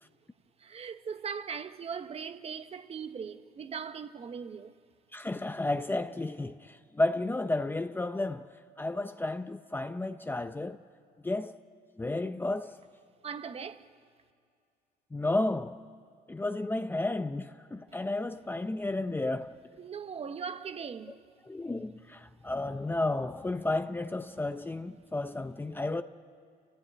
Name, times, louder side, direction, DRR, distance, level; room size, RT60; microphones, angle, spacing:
voice 1, 0.6-4.7 13.2-13.9 19.8-21.2, right 6 dB, 35° right, 1.1 m, -39 dB
voice 2, 5.1-8.5 8.8-10.8 11.2-11.6 12.0-12.8 15.1-15.8 16.3-19.5 21.4-26.0, left 2 dB, 10° left, 0.6 m, -32 dB
29.0 x 15.0 x 9.9 m
cardioid pair, 110°, 17 cm